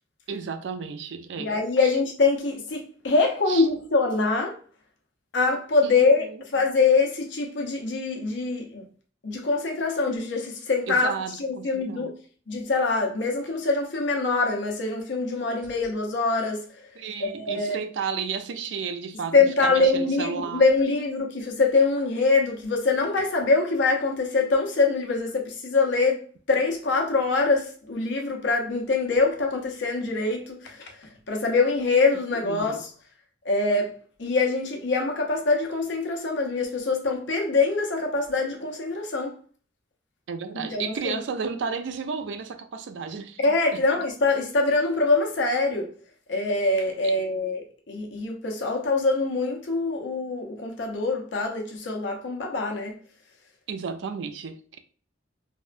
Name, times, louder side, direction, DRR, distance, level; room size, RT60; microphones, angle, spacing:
voice 1, 0.3-1.5 1.8-1.9 3.5-3.7 5.8-6.4 10.9-12.1 17.0-20.6 32.4-32.8 40.3-43.4 43.7-43.8 47.0-47.2 53.7-54.8, right 5 dB, 75° right, 0.4 m, -33 dB
voice 2, 1.4-4.5 5.3-8.8 9.2-12.1 12.5-16.6 17.2-17.8 19.3-26.2 26.5-30.9 31.3-32.9 33.4-33.9 34.2-39.3 40.5-41.2 43.4-45.9 46.3-52.9, left 3 dB, 75° left, 0.7 m, -24 dB
3.4 x 2.2 x 2.5 m
head